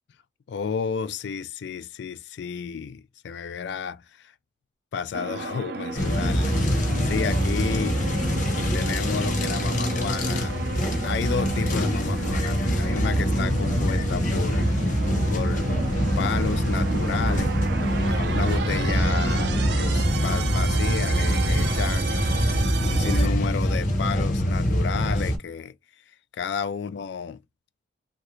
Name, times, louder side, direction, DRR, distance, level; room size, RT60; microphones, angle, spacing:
voice 1, 0.5-4.3 4.9-6.6 7.0-8.0 8.7-10.6 11.0-14.7 15.3-15.7 16.2-17.6 18.1-25.7 26.3-27.4, left 6 dB, 60° left, 0.3 m, -32 dB
sound 1, 5.1-23.3, right 4 dB, 55° right, 0.4 m, -33 dB
sound 2, 6.0-25.4, equal, 40° left, 0.7 m, -24 dB
3.2 x 2.5 x 2.9 m
head